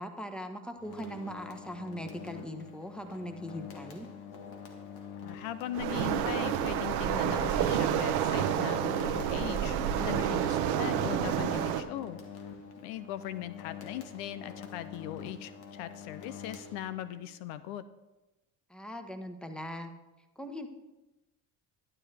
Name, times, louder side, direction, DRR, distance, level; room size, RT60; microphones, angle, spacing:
voice 1, 0.0-4.1 18.7-19.9 20.4-20.7, equal, ahead, 6 dB, 1.2 m, -40 dB
sound 1, 0.8-17.2, left 7 dB, 60° left, 1.6 m, -46 dB
voice 2, 5.2-12.2 12.8-17.8, left 12 dB, 75° left, 13 dB, 0.6 m, -39 dB
Waves surf, 5.7-11.8, right 9 dB, 80° right, 0.8 m, -29 dB
12.0 x 9.6 x 3.4 m, 1.1 s
hypercardioid pair, 65°, 43 cm